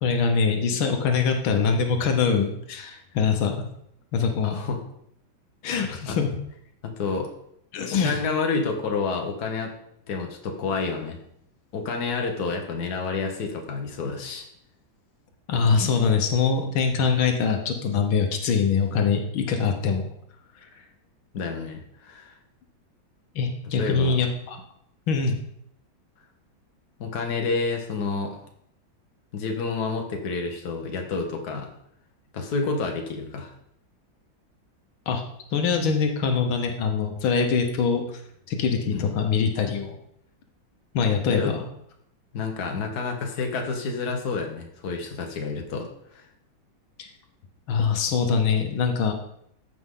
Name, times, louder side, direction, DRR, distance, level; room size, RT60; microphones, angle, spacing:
voice 1, 0.0-3.6 4.1-4.6 5.6-6.3 7.7-8.2 15.5-20.1 23.4-24.6 25.1-25.4 35.1-35.2 35.5-38.2 38.5-40.0 40.9-41.6 47.0-47.1 47.7-49.1, left 5 dB, 85° left, 4 dB, 1.8 m, -23 dB
voice 2, 4.4-4.8 6.1-6.2 6.8-7.3 7.9-9.7 10.1-11.2 11.7-14.5 21.3-22.3 23.8-24.2 27.0-28.4 29.3-31.7 32.3-33.5 38.9-39.1 41.3-41.5 42.3-46.3, left 4 dB, 55° left, 2 dB, 1.7 m, -29 dB
14.5 x 5.4 x 3.8 m, 0.73 s
omnidirectional pair, 2.2 m